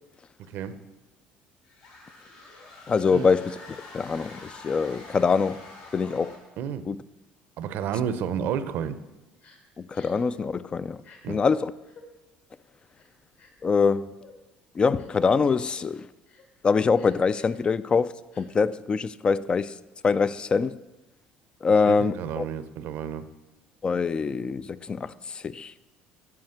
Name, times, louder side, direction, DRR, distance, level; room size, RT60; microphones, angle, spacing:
voice 1, 0.5-0.8 3.1-3.3 6.6-6.8 7.6-9.0 11.2-11.4 21.9-23.3, right 8 dB, 65° right, 0.7 m, -31 dB
sound 1, 1.6-6.6, left 3 dB, 85° left, 3.3 m, -46 dB
voice 2, 2.9-3.6 3.9-5.6 5.9-6.3 6.9-7.0 9.8-11.0 11.3-11.7 13.6-14.1 14.8-16.1 16.6-19.7 20.0-20.8 21.6-22.4 23.8-25.7, left 5 dB, 25° left, 0.3 m, -24 dB
Crying sobbing, 9.4-9.6 9.9-10.3 11.0-11.2 11.8-12.0 12.9-13.6 14.2-14.4 15.0-15.2 15.6-15.9 16.2-16.5 16.9-17.6 18.3-18.4, left 4 dB, 60° left, 2.3 m, -53 dB
9.6 x 4.9 x 7.8 m
cardioid pair, 115°, 4 cm